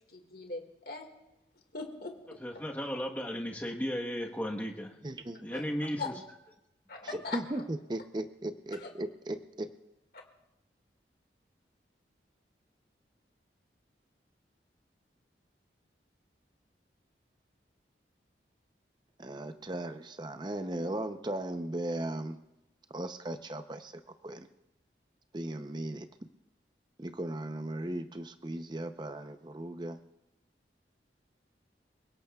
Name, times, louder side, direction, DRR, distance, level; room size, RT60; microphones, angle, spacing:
voice 1, 0.1-1.1 1.7-2.1 5.5-5.6 6.0-6.1 6.9-7.6 8.8-8.9 10.1-10.2, left 4 dB, 55° left, 3 dB, 2.0 m, -40 dB
voice 2, 2.4-4.9 5.4-6.1, equal, 10° left, 0 dB, 1.2 m, -35 dB
voice 3, 5.0-5.6 7.0-9.7 19.2-22.4 22.9-23.9 24.2-24.5 25.3-26.1 27.0-30.0, right 1 dB, 25° right, 9 dB, 0.7 m, -37 dB
28.0 x 17.5 x 2.4 m, 0.92 s
head